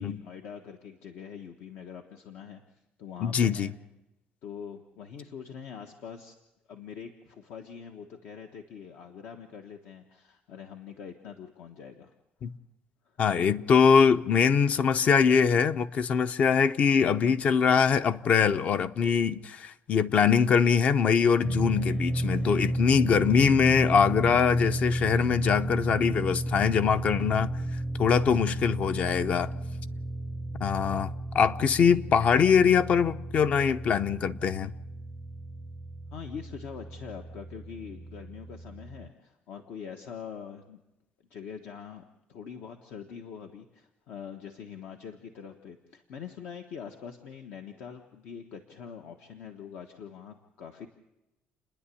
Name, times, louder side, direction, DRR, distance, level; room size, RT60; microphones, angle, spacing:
voice 1, 0.0-2.6 3.0-3.7 4.4-6.3 6.7-12.1 13.0-13.2 36.1-40.8 41.3-50.9, left 7 dB, 70° left, 1.3 m, -43 dB
voice 2, 3.2-3.7 12.4-12.5 13.2-27.5 28.0-29.5 30.6-34.7, left 6 dB, 40° left, 0.7 m, -23 dB
sound 1, 21.4-39.1, right 1 dB, 10° left, 0.7 m, -33 dB
29.5 x 10.5 x 8.5 m
cardioid pair, 155°, 3 cm